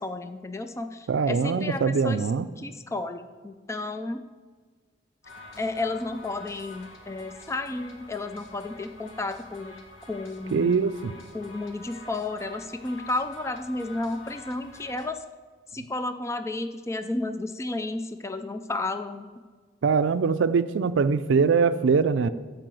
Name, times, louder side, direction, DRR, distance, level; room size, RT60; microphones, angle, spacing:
voice 1, 0.0-2.2 2.6-4.2 5.6-9.8 10.1-10.8 11.3-15.2 15.7-19.3, left 2 dB, 15° left, 8 dB, 0.4 m, -32 dB
voice 2, 1.1-2.5 10.5-11.2 19.8-22.3, right 5 dB, 75° right, 12 dB, 0.4 m, -23 dB
sound 1, 5.2-15.1, left 2 dB, 90° left, 1.7 m, -47 dB
14.0 x 4.7 x 7.6 m, 1.5 s
head